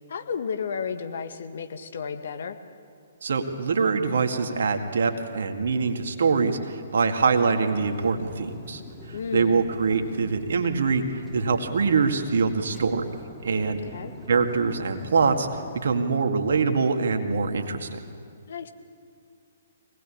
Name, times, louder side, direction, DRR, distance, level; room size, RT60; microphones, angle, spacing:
voice 1, 0.1-2.6 9.1-9.6 13.7-14.1 18.5-18.7, left 6 dB, 60° left, 8 dB, 1.8 m, -33 dB
voice 2, 3.2-8.8 9.3-13.1 13.4-13.8 14.3-15.5 15.8-18.0, right 5 dB, 60° right, 6 dB, 2.1 m, -24 dB
sound 1, 7.7-16.0, left 1 dB, 10° left, 3.1 m, -43 dB
24.5 x 19.5 x 8.6 m, 2.4 s
figure-of-eight pair, 125°, 0 cm